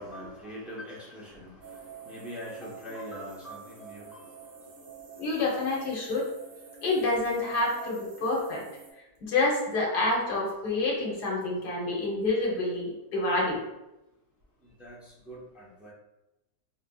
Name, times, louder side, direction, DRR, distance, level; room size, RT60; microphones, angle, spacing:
voice 1, 0.0-4.5 14.8-15.9, equal, ahead, -6 dB, 0.4 m, -43 dB
sound 1, 1.6-8.9, right 6 dB, 80° right, 1.5 m, -48 dB
voice 2, 5.2-6.2 6.8-8.6 9.2-13.6, left 2 dB, 70° left, -3 dB, 1.5 m, -28 dB
5.1 x 2.8 x 2.3 m, 0.95 s
omnidirectional pair, 1.8 m